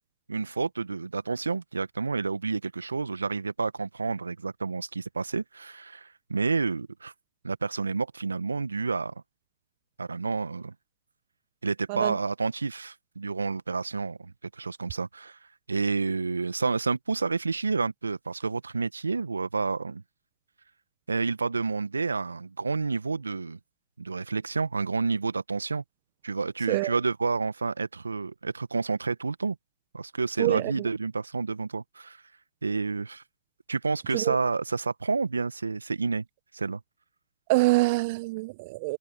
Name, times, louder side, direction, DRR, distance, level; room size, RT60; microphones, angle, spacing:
voice 1, 0.3-7.1 7.4-9.1 10.0-10.7 11.6-15.4 15.7-20.0 21.1-23.6 24.0-25.8 26.2-29.6 29.9-32.2 32.6-33.2 33.7-36.2 36.5-36.8, right 4 dB, 80° right, 1.5 m, -29 dB
voice 2, 30.4-30.9 34.1-34.4 37.5-39.0, right 23 dB, 35° right, 1.0 m, -25 dB
figure-of-eight pair, 130°, 0 cm